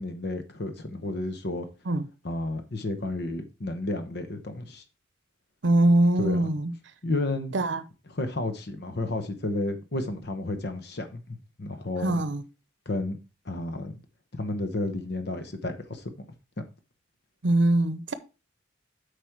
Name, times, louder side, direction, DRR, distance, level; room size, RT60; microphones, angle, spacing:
voice 1, 0.0-1.7 2.2-4.8 6.2-6.4 7.0-7.5 8.1-12.2 12.9-13.2 13.4-14.0 14.4-16.1, left 2 dB, 60° left, 1.0 m, -32 dB
voice 2, 5.6-6.7 7.5-7.8 12.0-12.4 17.4-18.1, right 1 dB, 70° right, 0.7 m, -22 dB
8.4 x 5.1 x 4.5 m
head